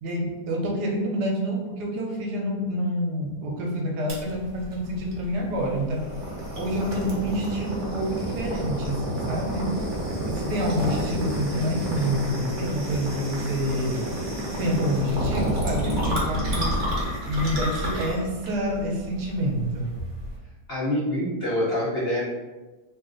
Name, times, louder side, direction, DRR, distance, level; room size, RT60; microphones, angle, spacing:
voice 1, 0.0-6.1 6.6-9.8 10.2-14.0 14.6-16.7 17.3-19.9, equal, 80° right, -1 dB, 1.3 m, -27 dB
sound 1, 4.1-20.4, right 1 dB, 40° right, 0.8 m, -30 dB
voice 2, 20.7-22.2, left 1 dB, 60° left, -7 dB, 0.6 m, -25 dB
3.1 x 2.5 x 3.7 m, 1.2 s
omnidirectional pair, 1.7 m